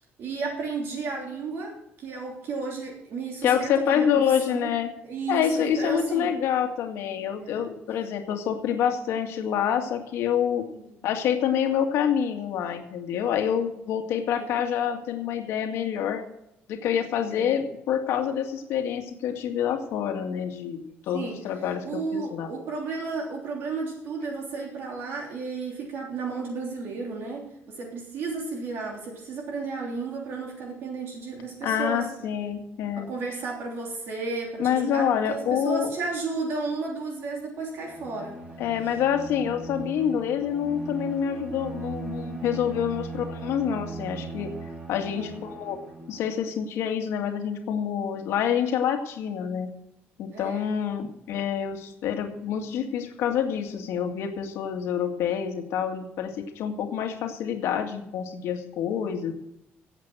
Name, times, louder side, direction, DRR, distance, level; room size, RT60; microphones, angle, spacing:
voice 1, 0.0-4.7 5.1-6.3 7.4-7.7 10.8-10.9 14.3-14.6 17.3-17.5 21.1-21.4 21.8-32.1 33.0-38.4 43.0-43.1 45.1-45.4 50.3-50.7 56.8-57.1, right 4 dB, 60° right, 0 dB, 3.2 m, -33 dB
voice 2, 3.4-4.9 5.3-10.7 11.0-16.2 16.7-22.5 31.6-33.1 34.6-35.9 38.6-44.5 44.9-45.8 46.1-49.7 50.2-59.3, left 8 dB, 80° left, 5 dB, 2.0 m, -27 dB
Bowed string instrument, 37.8-46.3, right 4 dB, 20° right, 3.2 m, -39 dB
17.0 x 8.2 x 6.3 m, 0.81 s
cardioid pair, 155°, 4 cm